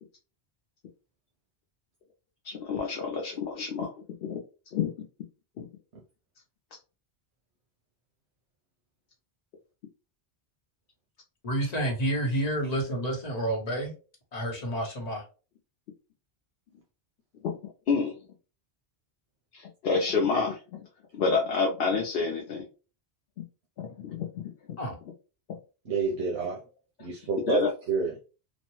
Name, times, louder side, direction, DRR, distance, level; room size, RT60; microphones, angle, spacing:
voice 1, 2.4-3.9 4.2-4.4 4.7-4.9 5.6-5.7 17.4-17.5 17.9-18.1 19.5-20.9 21.1-22.7 23.8-24.4 24.7-24.8 27.5-27.7, left 5 dB, 65° left, 0 dB, 0.8 m, -28 dB
voice 2, 11.4-13.9 14.3-15.2 24.8-25.0, right 1 dB, 40° left, 1 dB, 0.9 m, -29 dB
voice 3, 12.3-12.8 25.8-26.6 27.0-28.2, right 5 dB, 85° right, -2 dB, 0.9 m, -30 dB
3.0 x 2.1 x 2.9 m, 0.34 s
omnidirectional pair, 1.1 m